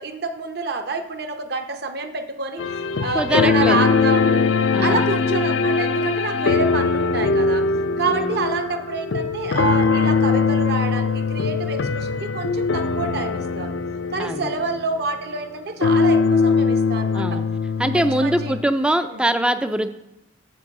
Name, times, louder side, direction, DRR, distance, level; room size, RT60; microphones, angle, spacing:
voice 1, 0.0-4.5 4.8-7.6 8.0-13.7 14.1-17.4 17.9-18.6 19.1-19.2, right 3 dB, 55° right, 7 dB, 0.8 m, -28 dB
sound 1, 2.6-15.5 15.8-18.6, left 4 dB, 75° left, 0.4 m, -21 dB
voice 2, 3.1-3.8 4.7-5.1 8.1-8.4 14.2-14.5 17.1-17.5 17.8-19.9, right 1 dB, 5° right, 9 dB, 0.3 m, -22 dB
8.0 x 6.1 x 4.8 m, 0.93 s
head